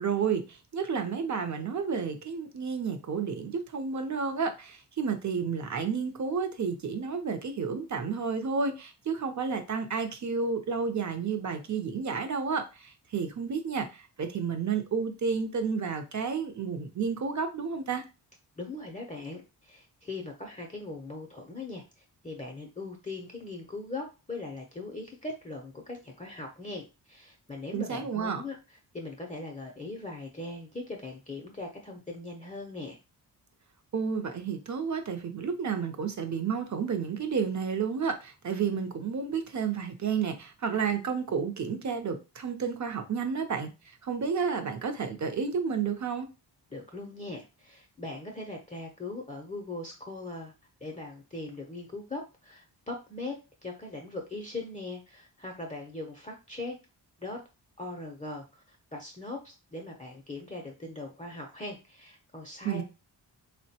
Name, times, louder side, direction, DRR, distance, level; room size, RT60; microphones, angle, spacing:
voice 1, 0.0-18.0 27.7-28.4 33.9-46.3 62.6-62.8, right 6 dB, 45° right, 0.6 m, -31 dB
voice 2, 18.6-33.0 46.7-50.5 50.8-53.4 53.6-56.8 57.2-57.4 57.8-62.8, left 2 dB, 20° left, 0.5 m, -40 dB
3.5 x 2.1 x 2.7 m
wide cardioid pair, 90°, 42 cm